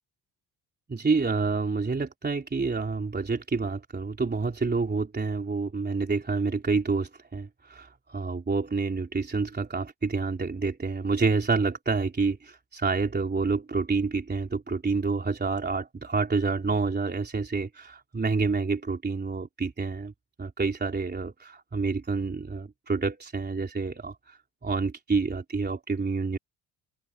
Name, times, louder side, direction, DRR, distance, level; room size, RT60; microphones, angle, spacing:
voice 1, 0.9-20.1 20.4-26.4, right 4 dB, 25° right, 3.5 m, -28 dB
open air
cardioid pair, 105°, 41 cm